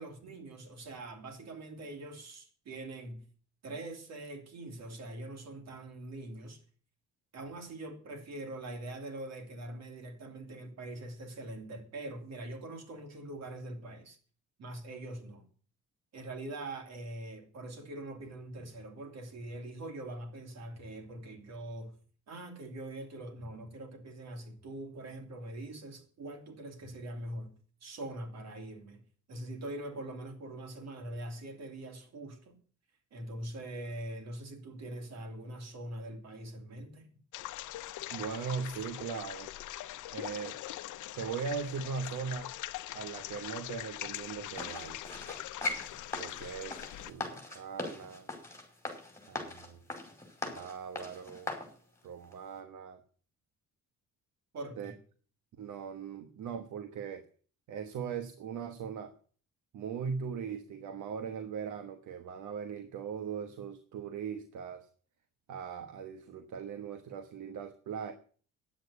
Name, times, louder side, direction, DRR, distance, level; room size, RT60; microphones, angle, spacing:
voice 1, 0.0-3.2 3.6-6.6 7.3-14.2 14.6-15.4 16.1-22.0 22.3-27.5 27.8-29.0 29.3-32.6 33.1-37.1 54.5-55.0, right 1 dB, 60° right, 2.9 m, -43 dB
sound 1, 37.3-47.1, left 15 dB, 80° left, 0.7 m, -42 dB
voice 2, 38.1-39.5 40.1-40.6 41.2-42.5 42.9-45.0 46.1-48.3 49.3-49.8 50.4-51.5 52.0-53.0 54.8-54.9 55.6-57.2 57.7-59.1 59.7-64.9 65.5-68.1, right 6 dB, 75° right, 1.2 m, -39 dB
sound 2, 44.6-51.7 52.2-52.3, left 2 dB, 10° left, 5.2 m, -40 dB
10.5 x 8.0 x 8.4 m
cardioid pair, 90°, 30 cm